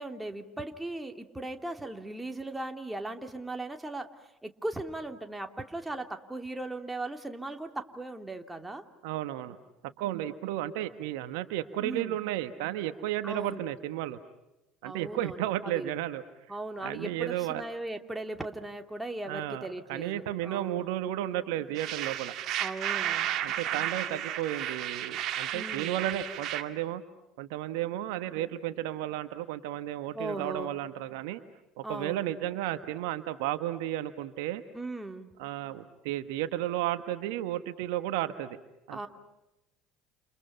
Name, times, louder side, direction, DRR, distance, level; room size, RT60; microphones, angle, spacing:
voice 1, 0.0-4.1 4.4-8.8 11.8-12.2 13.2-13.6 14.8-15.5 15.7-15.9 16.5-20.9 22.6-23.3 25.5-26.0 30.1-30.7 31.8-32.3 34.7-35.3 38.9-39.1, right 2 dB, 10° right, 4 dB, 2.9 m, -38 dB
voice 2, 9.0-9.6 9.8-14.2 14.8-16.2 16.8-17.6 19.2-22.3 23.4-27.0 27.4-31.4 31.8-34.6 35.4-38.6 38.9-39.1, right 13 dB, 70° right, 11 dB, 1.3 m, -33 dB
sound 1, 21.8-26.6, right 11 dB, 50° right, 2.1 m, -33 dB
29.5 x 29.5 x 5.7 m, 0.96 s
hypercardioid pair, 65°, 0 cm